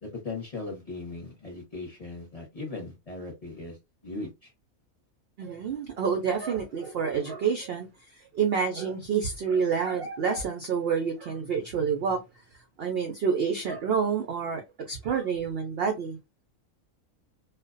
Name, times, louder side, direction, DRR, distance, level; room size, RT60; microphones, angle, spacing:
voice 1, 0.0-3.8 4.0-4.5, left 3 dB, 35° left, 0.7 m, -38 dB
voice 2, 5.4-12.2 12.8-16.2, right 6 dB, 75° right, 0.5 m, -28 dB
2.4 x 2.1 x 2.4 m
omnidirectional pair, 1.5 m